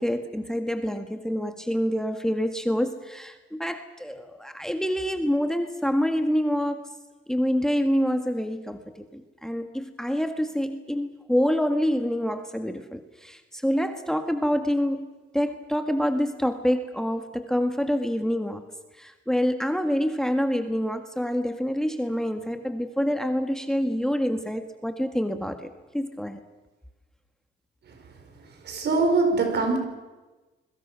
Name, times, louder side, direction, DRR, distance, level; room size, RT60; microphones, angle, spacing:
voice 1, 0.0-6.9 7.3-15.1 15.3-18.6 19.0-26.4, equal, 5° left, 1.7 m, -27 dB
voice 2, 28.6-29.8, right 3 dB, 60° right, 5.0 m, -22 dB
29.5 x 22.5 x 6.1 m
cardioid pair, 90°, 20 cm